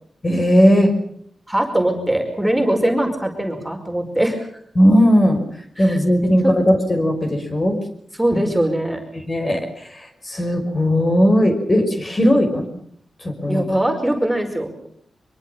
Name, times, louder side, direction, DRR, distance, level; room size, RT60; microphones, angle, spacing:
voice 1, 0.2-0.9 4.8-5.4 5.8-7.8 9.1-12.7 13.2-13.6, equal, 30° left, 5 dB, 5.9 m, -17 dB
voice 2, 1.5-4.4 5.8-6.0 8.2-9.0 13.5-14.9, right 1 dB, 5° right, 3 dB, 5.2 m, -21 dB
24.0 x 23.0 x 5.8 m, 0.64 s
cardioid pair, 85°, 0 cm